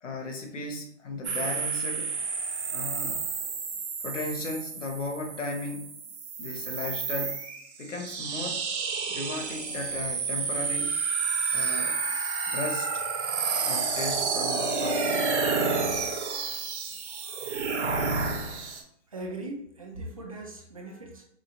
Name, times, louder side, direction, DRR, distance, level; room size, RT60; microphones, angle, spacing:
voice 1, 0.0-2.2 2.7-3.2 4.0-5.9 6.4-7.4 7.8-8.6 9.1-11.0 11.5-12.0 12.5-12.9 13.6-15.3 20.9-21.0, left 2 dB, 85° left, 3 dB, 1.1 m, -35 dB
sound 1, 1.2-18.8, right 5 dB, 65° right, 1.0 m, -30 dB
voice 2, 19.1-21.2, right 2 dB, 30° right, 1 dB, 0.5 m, -39 dB
4.9 x 2.5 x 2.8 m, 0.70 s
hypercardioid pair, 165°, 36 cm